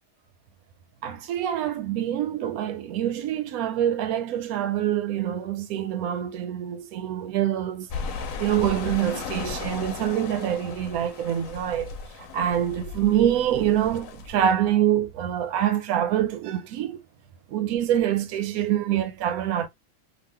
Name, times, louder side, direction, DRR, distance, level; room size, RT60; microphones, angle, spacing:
voice 1, 1.0-7.9 8.4-11.9 12.3-17.0 17.5-19.7, right 11 dB, 75° right, 1.1 m, -25 dB
sound 1, 7.9-14.5, left 5 dB, 70° left, 0.9 m, -36 dB
3.0 x 2.4 x 3.2 m
omnidirectional pair, 1.6 m